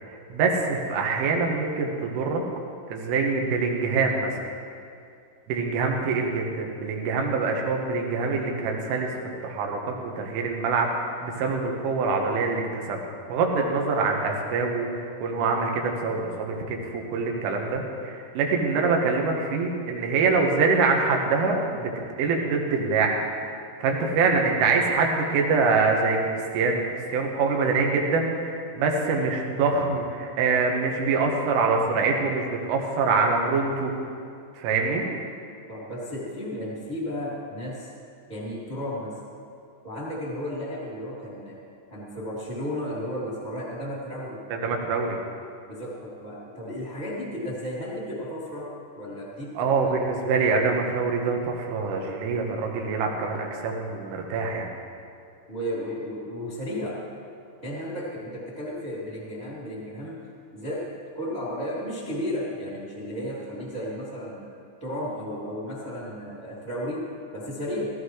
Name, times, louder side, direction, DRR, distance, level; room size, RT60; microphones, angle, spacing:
voice 1, 0.1-2.4 2.9-4.4 5.5-13.0 13.3-21.9 22.2-33.9 34.6-35.0 44.5-45.2 49.6-54.7, right 4 dB, 85° right, 1 dB, 3.8 m, -25 dB
voice 2, 35.7-37.9 38.3-39.1 39.8-41.6 41.9-44.4 45.7-48.7 48.9-50.0 55.5-57.0 57.6-60.2 60.5-60.8 61.1-64.5 64.8-67.0 67.3-67.9, equal, 15° right, -6 dB, 1.4 m, -33 dB
16.5 x 14.5 x 3.2 m, 2.5 s
omnidirectional pair, 5.5 m